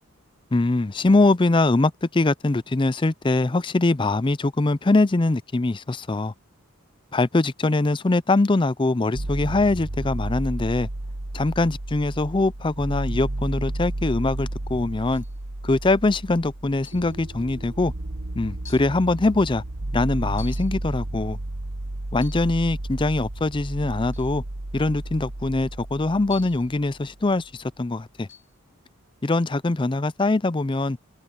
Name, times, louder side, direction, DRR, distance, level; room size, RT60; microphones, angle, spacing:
voice 1, 0.5-6.3 7.1-10.9 11.3-15.2 15.6-17.9 18.4-19.6 19.9-21.4 22.1-24.4 24.7-28.3 29.2-31.0, left 2 dB, 25° left, 0.5 m, -22 dB
sound 1, 9.1-27.1, right 1 dB, 55° right, 1.2 m, -32 dB
sound 2, 15.1-15.4 16.8-17.2 18.0-18.1 18.7-19.0 20.4-20.8 22.1-22.5 24.1-24.4 26.3-26.7 28.3-28.5, left 7 dB, 60° left, 5.8 m, -46 dB
head